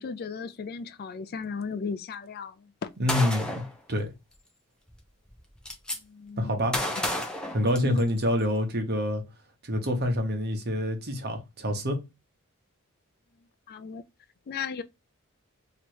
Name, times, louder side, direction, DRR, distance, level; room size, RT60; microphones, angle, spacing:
voice 1, 0.0-2.9 6.0-6.6 7.8-8.1 13.7-14.0 14.5-14.8, left 5 dB, 45° left, 0.4 m, -35 dB
voice 2, 3.0-3.6 3.9-4.1 6.4-6.8 7.5-9.2 9.6-12.0, left 1 dB, 50° right, 1.1 m, -27 dB
Gunshot gunfire, 3.1-3.7 4.9-5.0 5.3-6.0 6.7-8.2, left 1 dB, 5° left, 0.8 m, -31 dB
3.1 x 2.9 x 4.5 m
head